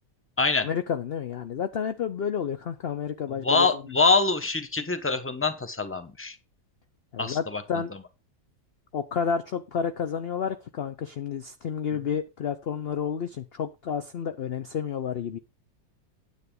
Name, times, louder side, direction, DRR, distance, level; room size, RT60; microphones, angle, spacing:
voice 1, 0.6-3.7 7.1-7.9 8.9-15.4, left 7 dB, 55° left, 0.7 m, -30 dB
voice 2, 3.4-6.4 7.2-7.8, left 3 dB, 10° left, 1.0 m, -25 dB
9.7 x 8.4 x 3.8 m
omnidirectional pair, 1.9 m